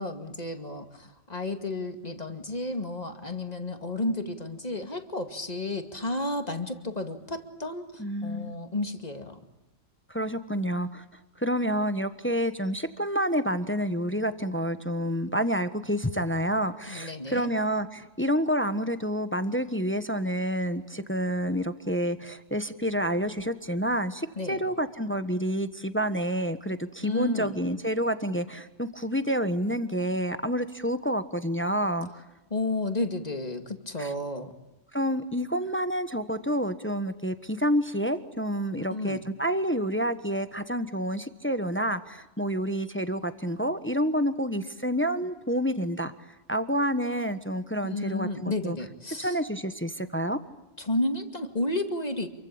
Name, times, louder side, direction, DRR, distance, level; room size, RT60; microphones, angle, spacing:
voice 1, 0.0-9.4 16.9-17.5 24.4-24.6 27.0-27.6 32.5-34.5 38.9-39.2 47.8-49.4 50.8-52.3, left 2 dB, 30° left, 6 dB, 2.4 m, -32 dB
voice 2, 8.0-8.5 10.1-11.0 11.4-32.2 34.0-34.1 34.9-46.1 46.5-48.8 49.2-50.4, equal, 10° left, 10 dB, 1.2 m, -28 dB
28.0 x 24.0 x 8.8 m, 0.95 s
omnidirectional pair, 1.3 m